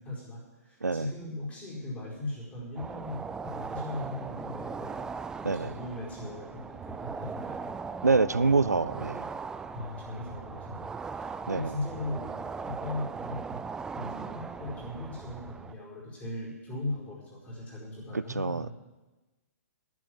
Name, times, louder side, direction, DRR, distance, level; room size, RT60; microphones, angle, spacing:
voice 1, 0.0-5.0 5.5-7.7 9.7-12.3 12.6-13.6 13.9-18.7, left 2 dB, 15° left, -4 dB, 4.7 m, -38 dB
sound 1, 2.8-15.7, right 5 dB, 10° right, 0.4 m, -39 dB
voice 2, 8.0-9.3 11.5-11.7 18.1-18.7, right 3 dB, 85° right, 18 dB, 0.5 m, -26 dB
11.0 x 9.0 x 7.9 m, 1.2 s
figure-of-eight pair, 120°, 9 cm